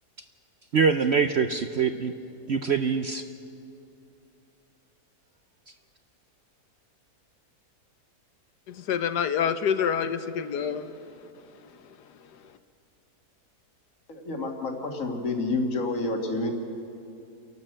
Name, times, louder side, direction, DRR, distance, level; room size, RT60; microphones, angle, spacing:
voice 1, 0.7-2.1 2.5-3.2, right 5 dB, 60° right, 7 dB, 0.7 m, -24 dB
voice 2, 8.7-10.9, left 7 dB, 90° left, 10 dB, 1.5 m, -27 dB
voice 3, 14.1-16.5, left 2 dB, 55° left, 2 dB, 2.2 m, -29 dB
28.5 x 12.0 x 7.7 m, 2.6 s
omnidirectional pair, 1.7 m